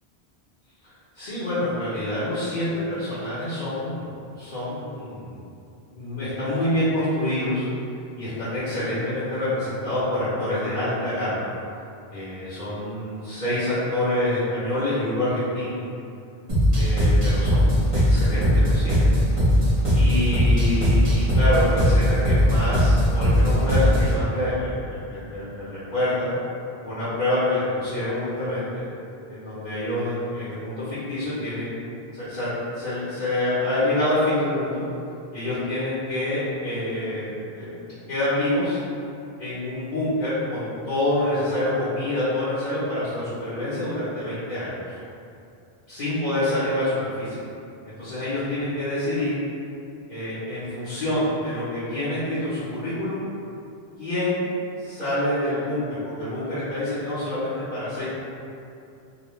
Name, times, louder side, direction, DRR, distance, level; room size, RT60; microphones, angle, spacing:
voice 1, 1.1-4.1 4.4-5.4 5.9-7.7 8.2-11.5 12.1-15.8 16.7-19.2 19.9-26.3 26.8-28.8 29.3-31.7 32.1-32.5 32.7-34.8 35.3-38.8 39.4-45.0 45.9-47.4 47.8-49.4 50.1-53.2 54.0-54.5 54.8-58.1, left 1 dB, 50° left, -13 dB, 0.8 m, -27 dB
sound 1, 16.5-24.2, equal, 35° right, 0.8 m, -19 dB
2.4 x 2.1 x 3.0 m, 2.5 s
omnidirectional pair, 1.0 m